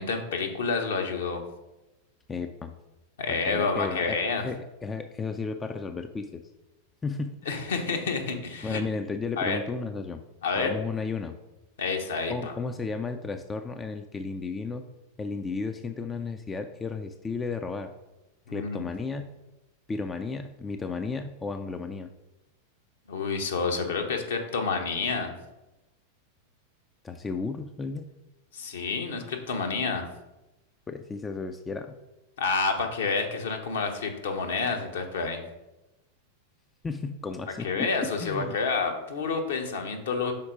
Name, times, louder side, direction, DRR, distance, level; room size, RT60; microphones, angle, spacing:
voice 1, 0.0-1.4 3.2-4.5 7.5-8.8 9.4-9.6 10.4-10.7 11.8-12.5 18.5-18.8 23.1-25.4 28.5-30.1 32.4-35.4 37.6-40.3, left 4 dB, 60° left, 4 dB, 0.9 m, -29 dB
voice 2, 2.3-2.7 3.3-6.4 7.0-7.4 8.6-10.2 10.6-11.4 12.3-14.8 15.2-17.9 18.5-19.4 19.9-22.1 27.0-28.1 30.9-32.0 36.8-38.6, left 4 dB, 15° left, 7 dB, 0.4 m, -33 dB
5.8 x 4.2 x 4.9 m, 0.99 s
figure-of-eight pair, 90°, 0 cm